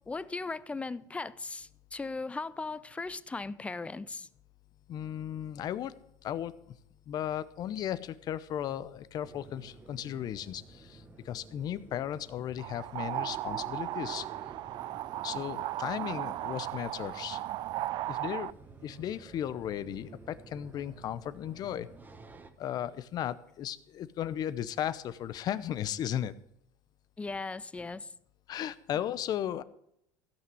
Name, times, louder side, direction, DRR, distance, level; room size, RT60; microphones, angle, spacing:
voice 1, 0.1-4.3 27.2-28.1, left 3 dB, 15° left, 0.5 m, -38 dB
voice 2, 4.9-5.9 6.2-6.7 7.1-14.3 15.2-17.4 18.1-18.5 18.8-21.9 22.6-26.3 28.5-29.6, left 10 dB, 45° left, 0.8 m, -35 dB
sound 1, 9.2-22.5, right 3 dB, 20° right, 1.3 m, -52 dB
sound 2, 12.6-18.5, right 15 dB, 50° right, 0.4 m, -36 dB
16.0 x 5.9 x 7.7 m
supercardioid pair, 120°, 9 cm